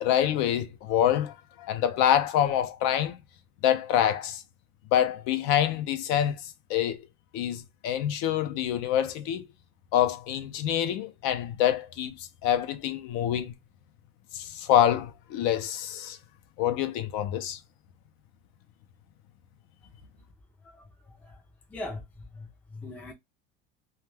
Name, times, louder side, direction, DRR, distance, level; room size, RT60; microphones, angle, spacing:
voice 1, 0.0-3.2 3.6-4.4 4.9-7.1 7.3-9.5 9.9-13.5 14.3-16.2 16.6-17.6, left 10 dB, 60° left, 0.6 m, -26 dB
voice 2, 20.6-21.4 21.7-23.1, left 2 dB, 5° left, 0.4 m, -41 dB
2.3 x 2.2 x 3.2 m
cardioid pair, 155°, 30 cm